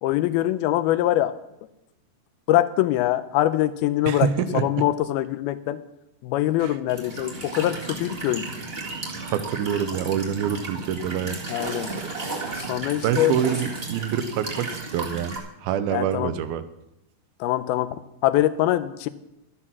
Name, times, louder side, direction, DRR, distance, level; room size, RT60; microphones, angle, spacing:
voice 1, 0.0-1.3 2.5-5.8 6.2-8.5 11.5-11.9 12.5-13.4 15.9-16.3 17.4-19.1, left 14 dB, 90° left, 11 dB, 2.5 m, -23 dB
voice 2, 4.1-4.6 6.6-6.7 9.2-11.4 13.0-15.4 15.6-16.6, right 9 dB, 80° right, 12 dB, 2.6 m, -26 dB
Walk footsteps / Chirp tweet / Stream, 6.9-15.4, right 3 dB, 30° right, 1.1 m, -33 dB
12.5 x 9.8 x 6.1 m, 0.88 s
omnidirectional pair, 4.3 m